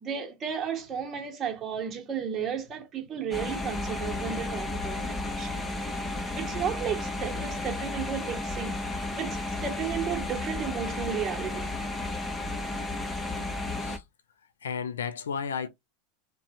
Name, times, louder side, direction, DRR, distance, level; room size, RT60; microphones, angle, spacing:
voice 1, 0.0-5.6 6.3-8.8 9.2-11.7, right 8 dB, 35° right, 1.1 m, -33 dB
sound 1, 3.3-14.0, left 2 dB, 15° left, 0.7 m, -33 dB
voice 2, 14.6-15.7, left 6 dB, 85° left, 0.4 m, -33 dB
2.6 x 2.3 x 2.8 m
hypercardioid pair, 95°, 0 cm